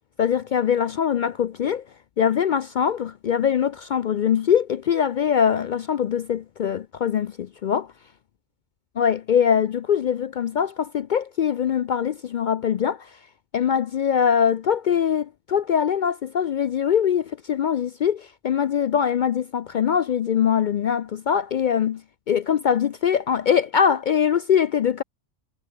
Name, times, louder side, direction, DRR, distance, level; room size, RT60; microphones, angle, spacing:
voice 1, 0.2-1.8 2.2-7.9 9.0-13.1 13.5-22.0 22.3-25.0, left 8 dB, 60° left, 0.5 m, -22 dB
omnidirectional pair, 1.2 m